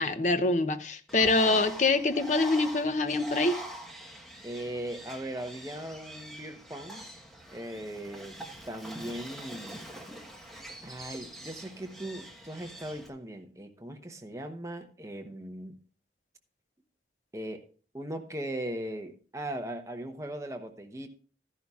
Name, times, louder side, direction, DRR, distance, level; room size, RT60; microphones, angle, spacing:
voice 1, 0.0-3.6, left 3 dB, 40° left, 0.7 m, -25 dB
Bird, 1.1-13.1, equal, ahead, 1.2 m, -44 dB
voice 2, 4.4-7.0 7.5-9.9 10.8-15.8 17.3-17.6 17.9-21.1, right 1 dB, 15° right, 0.8 m, -39 dB
13.5 x 11.0 x 2.4 m
head